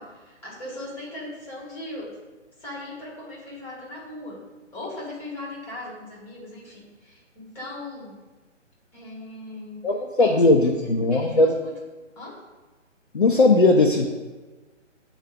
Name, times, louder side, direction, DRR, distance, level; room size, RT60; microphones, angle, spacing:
voice 1, 0.0-2.2 2.6-4.4 4.7-8.1 8.9-9.8 10.2-11.7 12.1-12.4, left 2 dB, 5° left, -5 dB, 1.3 m, -38 dB
voice 2, 9.8-11.5 13.1-14.1, left 2 dB, 45° left, 1 dB, 0.6 m, -18 dB
7.9 x 4.0 x 5.1 m, 1.2 s
figure-of-eight pair, 140°, 38 cm